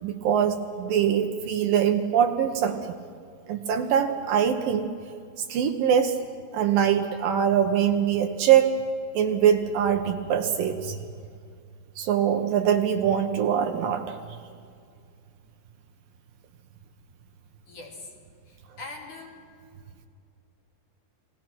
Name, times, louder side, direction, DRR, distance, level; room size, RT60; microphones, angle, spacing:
voice 1, 0.0-3.0 3.5-4.9 5.5-6.2 6.5-8.8 9.1-11.0 12.0-14.2, right 8 dB, 70° right, 6 dB, 2.3 m, -23 dB
voice 2, 17.7-18.1 18.5-19.4, left 3 dB, 50° left, 0 dB, 4.1 m, -42 dB
30.0 x 19.5 x 6.1 m, 2.3 s
omnidirectional pair, 4.9 m